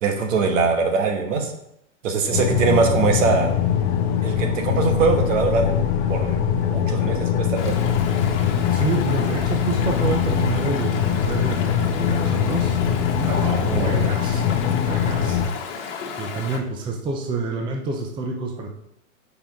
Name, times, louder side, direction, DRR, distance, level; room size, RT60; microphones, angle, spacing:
voice 1, 0.0-1.5 2.0-3.5 4.2-5.7 6.1-6.4 6.7-7.8 13.6-13.9, right 4 dB, 70° right, 4 dB, 1.6 m, -22 dB
sound 1, 2.3-15.5, left 8 dB, 30° left, 0.9 m, -22 dB
Stream, 7.5-16.6, left 6 dB, 60° left, 1.3 m, -34 dB
voice 2, 8.5-12.7 13.2-18.7, right 3 dB, 10° right, 2 dB, 0.6 m, -28 dB
5.5 x 4.6 x 5.2 m, 0.78 s
hypercardioid pair, 135°, 40 cm